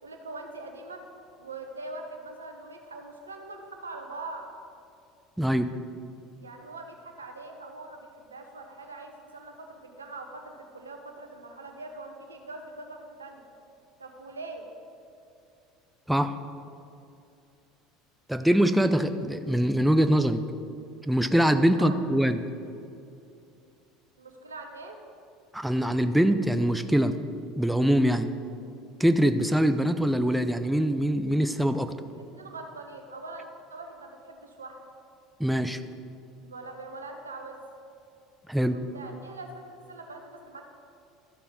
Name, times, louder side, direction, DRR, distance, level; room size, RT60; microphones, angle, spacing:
voice 1, 0.0-1.0 1.4-4.5 6.4-13.4 14.0-14.7 21.7-22.0 24.2-25.0 32.3-34.8 36.4-37.6 38.6-40.6, right 2 dB, 90° right, 4 dB, 0.9 m, -42 dB
voice 2, 5.4-5.7 16.1-16.3 18.3-20.4 21.0-22.4 25.5-27.1 27.6-28.3 29.0-31.9 35.4-35.8 38.5-38.8, equal, 5° right, 9 dB, 0.5 m, -23 dB
13.0 x 6.8 x 3.7 m, 2.6 s
hypercardioid pair, 70°, 0 cm